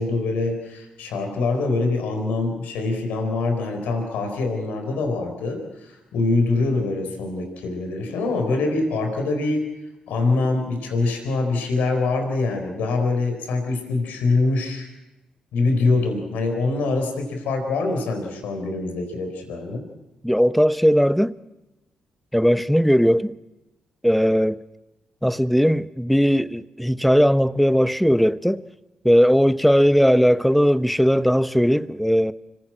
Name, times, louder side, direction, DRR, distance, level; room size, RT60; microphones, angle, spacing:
voice 1, 0.0-9.7 10.1-14.9 15.5-19.9, left 3 dB, 80° left, 4.3 m, -24 dB
voice 2, 20.2-21.3 22.3-23.3 24.0-24.6 25.2-28.6 29.0-32.3, equal, ahead, 0.8 m, -18 dB
25.5 x 17.5 x 7.6 m
hypercardioid pair, 45°, 3 cm